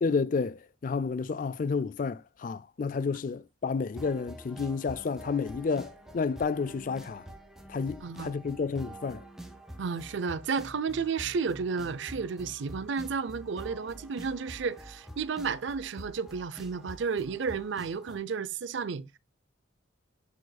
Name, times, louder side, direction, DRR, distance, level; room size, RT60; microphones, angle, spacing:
voice 1, 0.0-7.2 7.7-9.2, left 5 dB, 40° left, 0.3 m, -31 dB
sound 1, 3.9-18.2, right 1 dB, ahead, 1.0 m, -47 dB
voice 2, 8.0-8.3 9.8-19.0, right 5 dB, 65° right, 0.5 m, -32 dB
10.5 x 4.9 x 2.2 m
head